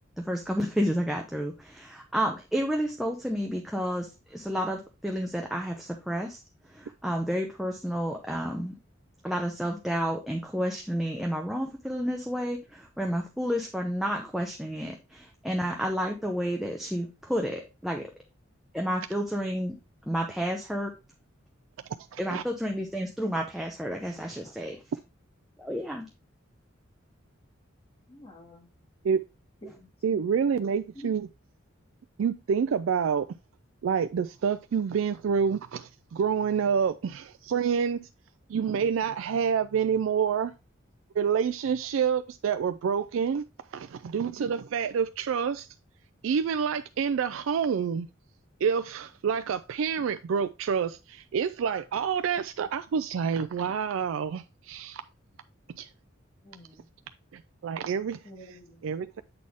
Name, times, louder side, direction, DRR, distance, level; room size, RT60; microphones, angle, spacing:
voice 1, 0.3-4.1 4.3-6.3 7.0-8.7 9.2-12.6 13.0-14.9 15.4-18.0 18.7-19.7 20.1-20.9 22.2-24.8 25.6-26.0, equal, ahead, 0.6 m, -30 dB
voice 2, 22.1-22.4 29.0-29.2 30.0-31.3 32.2-33.3 33.8-38.1 38.5-40.5 41.2-43.4 43.7-45.7 46.2-48.1 48.6-55.0 55.8-55.9 57.6-58.2 58.5-59.2, right 7 dB, 80° right, 0.3 m, -28 dB
voice 3, 28.1-28.7 29.6-30.2 31.0-31.1 56.4-56.9 58.2-58.8, equal, 30° left, 2.0 m, -47 dB
7.7 x 4.1 x 3.5 m
head